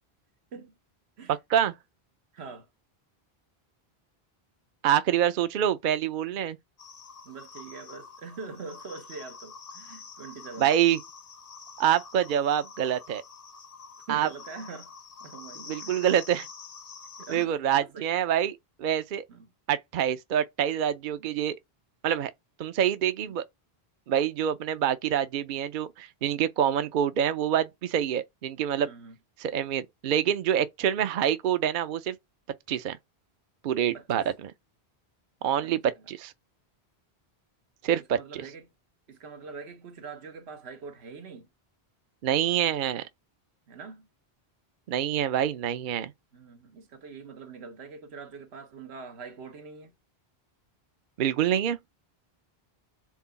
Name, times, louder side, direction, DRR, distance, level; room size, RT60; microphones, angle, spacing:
voice 1, 1.3-1.7 4.8-6.6 10.6-11.0 11.8-13.2 14.1-14.3 15.7-16.5 17.3-19.2 19.7-21.6 22.0-22.3 22.6-23.4 24.1-28.9 29.4-32.2 32.7-33.0 33.6-34.5 35.4-36.3 37.8-38.4 42.2-43.0 44.9-46.1 51.2-51.8, right 10 dB, 60° right, 0.7 m, -26 dB
voice 2, 2.3-2.7 7.2-10.7 14.1-14.9 15.2-16.1 17.2-18.1 19.3-19.5 23.2-23.4 28.8-29.2 33.9-34.3 35.6-35.7 37.9-38.7 39.1-41.5 43.7-44.1 46.3-49.9, right 4 dB, 85° right, 1.2 m, -43 dB
sound 1, 6.8-17.5, left 5 dB, 45° left, 0.6 m, -47 dB
4.7 x 3.8 x 5.6 m
omnidirectional pair, 1.0 m